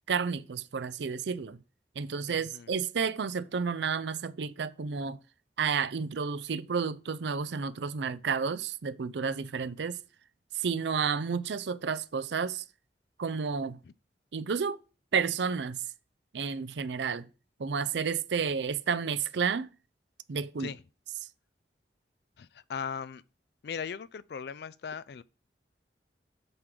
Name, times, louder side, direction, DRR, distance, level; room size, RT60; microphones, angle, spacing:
voice 1, 0.1-1.6 2.0-5.2 5.6-10.0 10.5-12.6 13.2-13.8 14.3-14.8 15.1-15.8 16.3-17.3 17.6-19.7 20.3-20.7, right 6 dB, 80° right, 0.5 m, -31 dB
voice 2, 2.3-2.7 13.8-13.9 20.6-20.8 22.4-23.2 23.6-25.2, left 6 dB, 65° left, 0.4 m, -38 dB
7.8 x 3.8 x 6.0 m
head